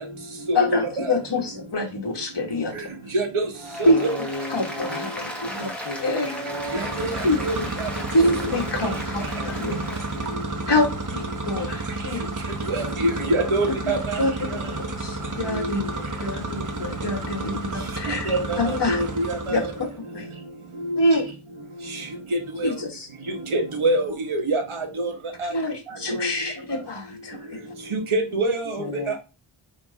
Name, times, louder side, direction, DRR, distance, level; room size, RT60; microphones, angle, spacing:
voice 1, 0.5-2.7 3.8-4.0 4.5-5.7 6.0-6.4 7.2-7.7 8.1-10.0 10.7-12.3 14.2-14.5 14.8-15.8 16.2-19.0 19.5-20.3 21.0-21.3 22.6-23.1 25.5-27.6, left 1 dB, 55° left, 2.1 m, -26 dB
voice 2, 3.1-3.5 3.8-4.1 6.7-7.1 7.4-7.9 12.7-14.2 18.3-19.6 20.9-21.0 22.6-22.7 23.5-25.1 25.4-25.5 26.1-26.3 27.9-28.8, right 2 dB, 75° right, 2.1 m, -25 dB
Applause, 3.5-10.3, equal, ahead, 2.1 m, -36 dB
voice 3, 3.8-7.6 8.0-10.7 13.1-16.6 17.2-17.5 17.9-18.0 18.3-18.5 28.8-29.2, left 3 dB, 90° left, 1.1 m, -39 dB
sound 1, 6.5-19.9, right 2 dB, 40° right, 1.4 m, -31 dB
8.8 x 3.7 x 3.7 m
wide cardioid pair, 100°, 49 cm